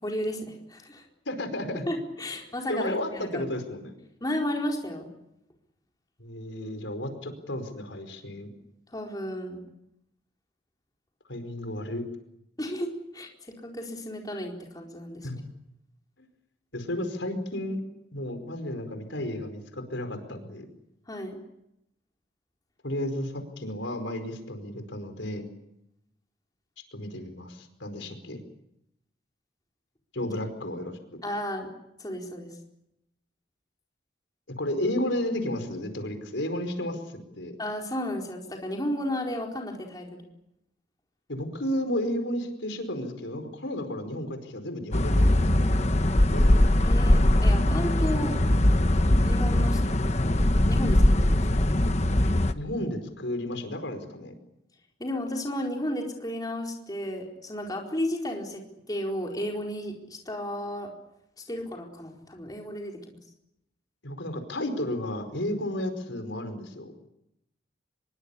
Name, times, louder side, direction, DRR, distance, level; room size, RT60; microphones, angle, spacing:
voice 1, 0.0-1.0 1.9-3.4 4.2-5.1 8.9-9.6 12.6-13.3 13.6-15.3 21.1-21.4 30.2-30.4 31.2-31.7 32.0-32.5 37.6-40.2 46.8-48.4 49.2-49.8 50.7-51.7 55.0-60.9 61.4-63.2, left 1 dB, 20° left, 1 dB, 4.4 m, -33 dB
voice 2, 1.2-1.9 2.7-3.9 6.2-8.5 11.3-12.0 15.2-15.5 16.7-17.8 18.1-20.7 22.8-25.5 26.9-28.4 30.1-31.2 34.6-37.0 37.3-37.6 41.3-45.7 46.3-46.7 52.5-54.3 64.0-67.1, left 1 dB, 90° left, 7 dB, 4.9 m, -33 dB
sound 1, 44.9-52.5, left 1 dB, 35° left, 1.1 m, -21 dB
25.0 x 23.0 x 8.6 m, 0.82 s
head